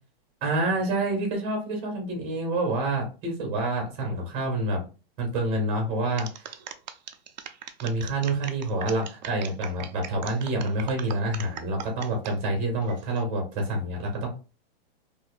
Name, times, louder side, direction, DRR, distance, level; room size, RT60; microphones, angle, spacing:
voice 1, 0.4-4.8 5.2-6.4 7.8-14.3, right 2 dB, 20° right, 1 dB, 1.1 m, -27 dB
sound 1, 6.2-12.3 12.8-13.2, right 8 dB, 50° right, 0.4 m, -40 dB
4.1 x 2.6 x 2.3 m, 0.32 s
supercardioid pair, 175°, 30 cm